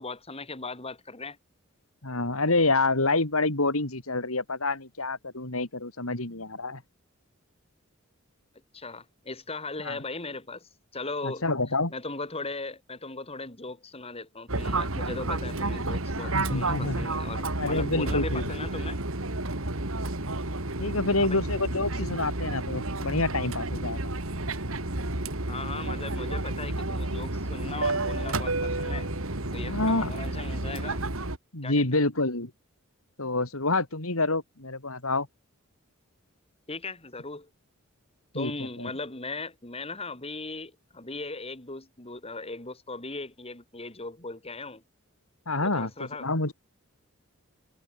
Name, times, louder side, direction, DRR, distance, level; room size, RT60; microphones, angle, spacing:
voice 1, 0.0-1.4 8.7-11.5 11.9-19.0 21.2-21.4 25.5-29.1 29.5-31.0 31.6-31.8 36.7-37.5 38.3-44.8 45.6-46.3, left 3 dB, 30° left, 4.8 m, -38 dB
voice 2, 2.0-6.8 9.8-10.0 11.2-11.9 16.2-17.1 17.6-18.4 20.8-24.0 29.7-30.1 31.5-32.5 33.2-35.3 38.3-38.5 38.8-38.9 45.5-46.5, left 2 dB, 80° left, 4.0 m, -27 dB
Fixed-wing aircraft airplane, 14.5-31.4, right 2 dB, 75° right, 3.1 m, -31 dB
head